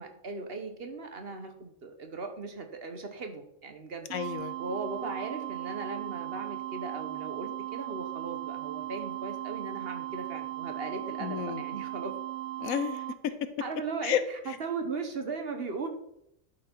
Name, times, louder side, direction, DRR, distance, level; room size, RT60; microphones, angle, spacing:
voice 1, 0.0-4.1 4.6-12.1 13.6-15.9, right 4 dB, 50° right, 6 dB, 1.2 m, -38 dB
voice 2, 4.1-4.6 11.2-11.6 12.6-13.5 14.0-14.2, left 9 dB, 85° left, 11 dB, 1.2 m, -31 dB
sound 1, 4.1-13.1, right 16 dB, 65° right, 0.9 m, -37 dB
11.5 x 5.5 x 4.5 m, 0.77 s
omnidirectional pair, 1.4 m